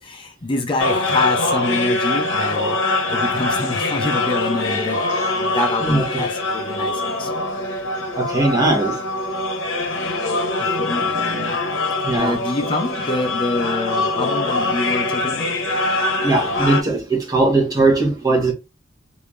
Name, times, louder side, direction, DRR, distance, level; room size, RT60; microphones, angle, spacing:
voice 1, 0.0-2.8 3.1-5.1 5.4-7.3 10.6-11.6 12.1-15.6, left 2 dB, 25° left, 0.4 m, -26 dB
sound 1, 0.8-16.8, left 2 dB, 70° left, 0.8 m, -23 dB
voice 2, 5.8-6.2 8.2-9.0 12.0-12.4 16.2-18.5, right 2 dB, 20° right, 1.0 m, -19 dB
3.3 x 2.6 x 3.1 m
head